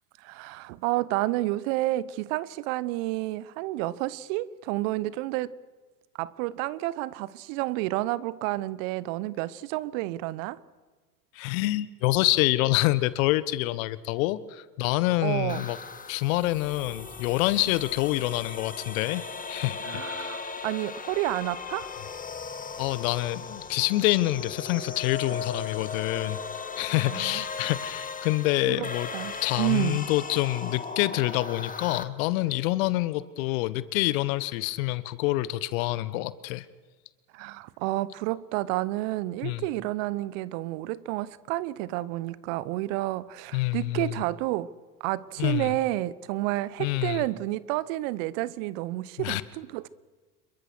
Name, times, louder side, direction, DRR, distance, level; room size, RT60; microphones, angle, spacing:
voice 1, 0.2-5.5 6.2-10.6 15.2-15.6 19.8-21.9 27.0-27.4 28.7-28.9 29.1-30.0 37.3-44.7 45.0-49.9, right 17 dB, 55° right, 1.0 m, -30 dB
voice 2, 11.3-15.8 16.1-20.4 22.8-29.1 29.4-36.7 39.4-39.7 43.5-44.2 45.4-45.8 46.8-47.2 49.2-49.4, left 18 dB, 60° left, 1.3 m, -27 dB
sound 1, 15.5-32.0, left 5 dB, 15° left, 1.8 m, -38 dB
27.5 x 22.5 x 6.3 m
hypercardioid pair, 80°, 47 cm